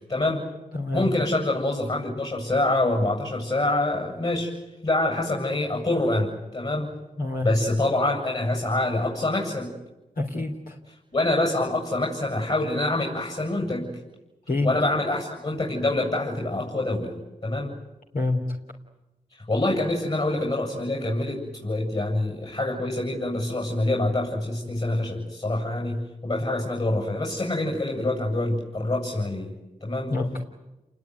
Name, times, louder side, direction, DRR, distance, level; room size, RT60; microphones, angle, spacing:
voice 1, 0.1-0.4 0.9-4.5 4.8-6.9 7.4-9.7 11.1-13.9 14.6-17.1 17.4-17.7 19.5-29.5 29.8-30.1, left 2 dB, 45° left, 0 dB, 7.7 m, -26 dB
voice 2, 0.7-1.0 7.2-7.5 10.2-10.8 14.5-14.7 18.1-18.4 30.1-30.4, left 2 dB, 80° left, 0 dB, 3.4 m, -26 dB
29.5 x 20.5 x 9.6 m, 1.0 s
cardioid pair, 50°, 14 cm